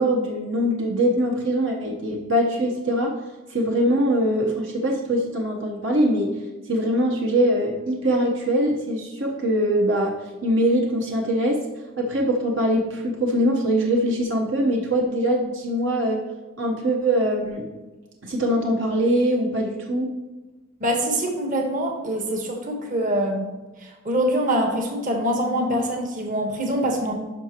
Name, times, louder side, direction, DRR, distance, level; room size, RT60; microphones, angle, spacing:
voice 1, 0.0-3.1 3.5-6.3 6.7-10.1 10.4-11.6 12.0-16.2 16.6-17.7 18.2-20.1, equal, 65° right, -1 dB, 1.0 m, -22 dB
voice 2, 20.8-23.5 23.8-27.1, right 1 dB, 40° right, 2 dB, 1.3 m, -24 dB
11.0 x 5.9 x 2.9 m, 1.2 s
head